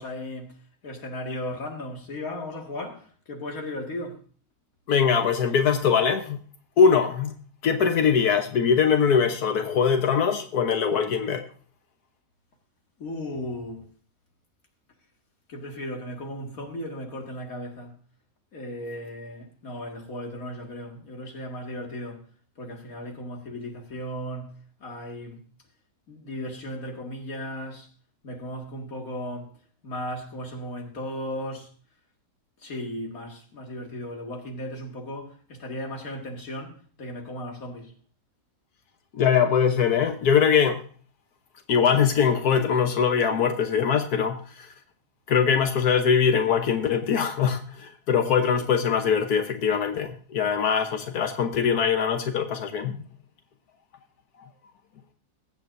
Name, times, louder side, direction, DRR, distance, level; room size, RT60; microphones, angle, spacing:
voice 1, 0.0-4.2 13.0-13.9 15.5-18.0 18.5-22.3 22.6-25.5 26.1-27.9 28.2-29.6 29.8-31.7 32.6-38.0, left 1 dB, 65° left, 2.5 m, -36 dB
voice 2, 4.9-6.4 6.8-7.3 7.6-11.4 39.1-40.8 41.7-44.7 45.3-53.0, left 7 dB, 85° left, 1.5 m, -22 dB
22.0 x 8.1 x 2.6 m
omnidirectional pair, 1.6 m